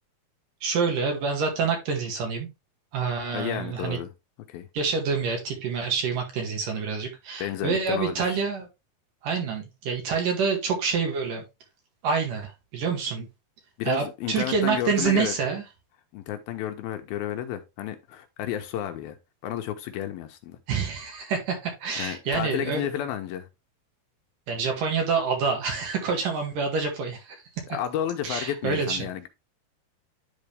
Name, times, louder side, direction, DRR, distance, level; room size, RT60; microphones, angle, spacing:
voice 1, 0.6-2.5 2.9-4.0 4.7-8.7 9.2-11.4 12.0-13.3 13.9-15.6 20.7-22.8 24.5-27.4 28.2-29.1, right 5 dB, 60° right, 3.3 m, -27 dB
voice 2, 3.3-4.1 4.5-4.7 7.4-8.4 13.8-15.3 16.1-19.2 19.4-20.6 22.0-23.5 27.7-29.3, left 11 dB, 80° left, 2.6 m, -31 dB
11.0 x 4.0 x 3.4 m
omnidirectional pair, 4.5 m